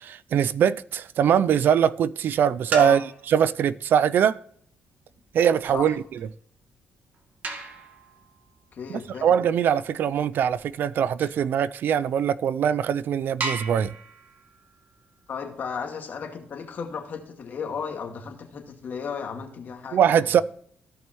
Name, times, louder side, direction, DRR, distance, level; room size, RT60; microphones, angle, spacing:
voice 1, 0.0-4.4 5.3-5.9 8.9-13.9 19.9-20.4, right 8 dB, 65° right, 0.4 m, -22 dB
sound 1, 2.7-3.4 5.1-11.5 12.2-12.3 12.7-12.8 13.4-16.0 18.2-19.1, right 4 dB, 50° right, 1.8 m, -38 dB
voice 2, 8.7-9.3 15.3-20.2, left 6 dB, 55° left, 2.1 m, -34 dB
15.5 x 5.5 x 3.0 m
cardioid pair, 100°, 4 cm